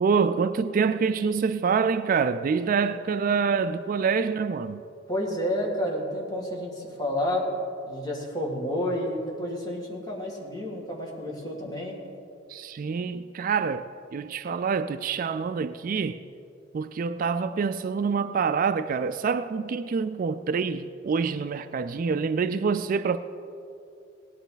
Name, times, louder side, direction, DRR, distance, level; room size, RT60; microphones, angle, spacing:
voice 1, 0.0-4.8 12.5-16.2 16.7-23.2, right 5 dB, 45° right, 0.3 m, -26 dB
voice 2, 5.1-7.4 7.9-11.9, left 1 dB, 20° left, 2.2 m, -30 dB
18.0 x 10.5 x 4.0 m
head